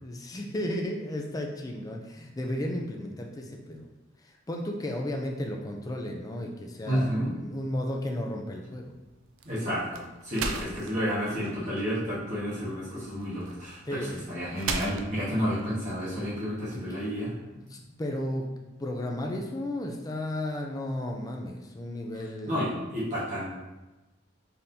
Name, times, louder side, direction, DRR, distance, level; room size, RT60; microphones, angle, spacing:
voice 1, 0.0-3.9 4.2-8.9 10.4-11.0 13.8-14.7 16.7-16.8 17.5-18.5 18.8-22.9, left 1 dB, 20° left, 1 dB, 0.4 m, -34 dB
voice 2, 6.9-7.3 9.4-17.3 22.5-23.6, equal, 35° right, -10 dB, 1.3 m, -31 dB
sound 1, 8.5-16.7, right 4 dB, 90° right, 0.4 m, -39 dB
4.2 x 3.5 x 2.7 m, 1.1 s
head